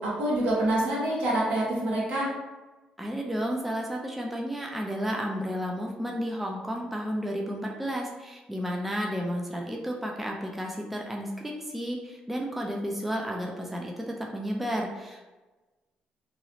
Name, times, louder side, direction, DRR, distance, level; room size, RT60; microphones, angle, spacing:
voice 1, 0.0-2.3, right 1 dB, 70° right, -6 dB, 1.3 m, -26 dB
voice 2, 3.0-14.0 14.3-15.2, equal, 5° right, 0 dB, 0.3 m, -32 dB
3.0 x 2.8 x 2.6 m, 1.2 s
cardioid pair, 150°, 3 cm